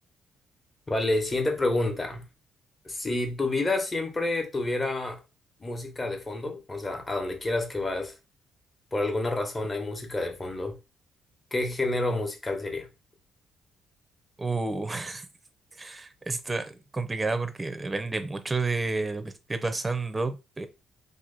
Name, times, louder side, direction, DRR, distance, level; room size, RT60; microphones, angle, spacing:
voice 1, 0.9-2.2 2.8-5.2 5.6-8.1 8.9-10.8 11.5-12.9, left 2 dB, 25° left, 1.1 m, -29 dB
voice 2, 14.4-15.3 15.8-20.7, right 3 dB, 20° right, 0.6 m, -30 dB
3.0 x 2.7 x 3.9 m
cardioid pair, 90°, 0 cm